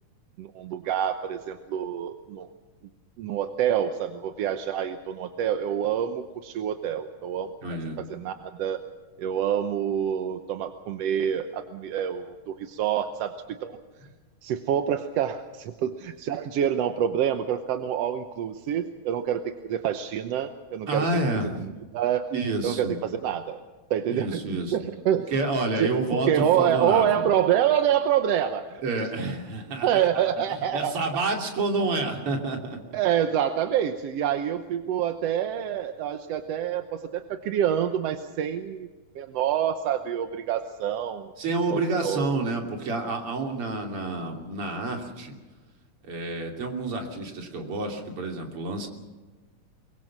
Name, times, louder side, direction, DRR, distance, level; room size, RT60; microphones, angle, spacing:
voice 1, 0.4-2.5 3.2-7.5 8.0-8.8 9.2-13.8 14.4-21.1 21.6-22.3 22.6-23.6 23.9-24.4 24.7-25.3 25.8-29.1 29.8-30.9 32.9-38.9 39.2-41.3 41.7-42.4, right 9 dB, 65° right, 8 dB, 1.8 m, -27 dB
voice 2, 7.6-8.0 20.9-21.7 22.3-23.0 24.1-24.8 25.3-27.3 28.8-30.2 30.5-32.8 41.4-45.3 46.0-48.9, right 2 dB, 45° right, 2 dB, 3.6 m, -29 dB
23.0 x 23.0 x 6.1 m, 1.3 s
omnidirectional pair, 3.5 m